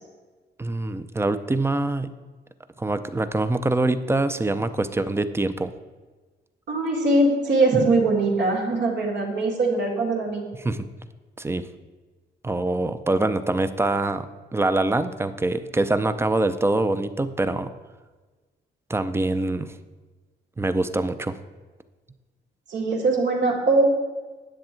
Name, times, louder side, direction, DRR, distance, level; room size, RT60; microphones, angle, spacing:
voice 1, 0.6-2.1 2.8-5.7 10.5-10.9 11.4-11.7 12.4-14.3 14.5-17.7 18.9-19.7 20.6-21.3, right 2 dB, 15° right, 11 dB, 0.4 m, -24 dB
voice 2, 6.7-10.4 22.7-23.8, right 2 dB, 80° right, -1 dB, 2.2 m, -21 dB
9.9 x 7.6 x 4.4 m, 1.3 s
wide cardioid pair, 140°, 19 cm